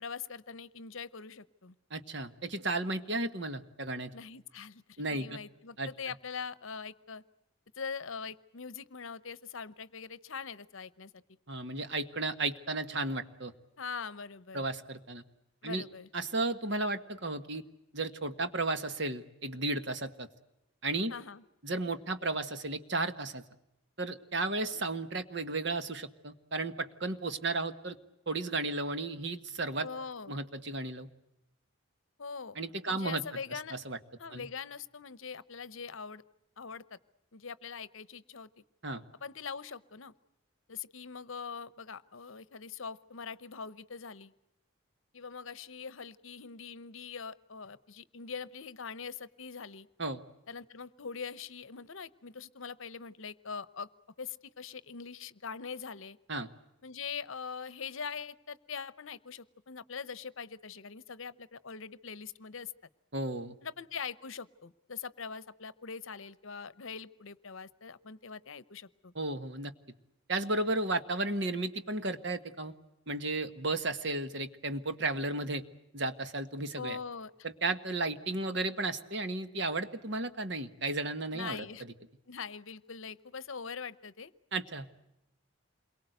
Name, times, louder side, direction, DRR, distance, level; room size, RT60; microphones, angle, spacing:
voice 1, 0.0-1.7 4.1-7.2 7.7-11.2 13.8-14.6 15.6-16.1 21.1-21.4 29.8-30.4 32.2-32.6 32.9-33.8 34.2-36.2 36.6-37.0 37.3-38.5 39.2-40.1 40.7-44.3 45.1-49.9 50.5-53.9 54.2-56.2 56.8-62.7 63.6-69.1 76.8-77.3 81.3-81.8 82.3-84.3, left 6 dB, 70° left, 17 dB, 0.9 m, -42 dB
voice 2, 1.9-4.1 5.0-5.4 5.8-5.9 11.5-13.5 14.5-15.2 15.6-15.8 16.1-17.6 17.9-20.3 20.8-21.1 21.6-23.4 24.0-28.0 28.3-29.9 30.3-31.1 32.6-33.2 33.7-34.0 34.3-34.4 38.8-39.0 50.0-50.2 56.3-56.5 63.1-63.6 69.1-69.7 70.3-72.7 73.1-75.6 75.9-77.0 77.4-81.6 84.5-84.9, right 2 dB, 55° right, 10 dB, 1.5 m, -34 dB
28.5 x 23.0 x 8.0 m, 0.89 s
head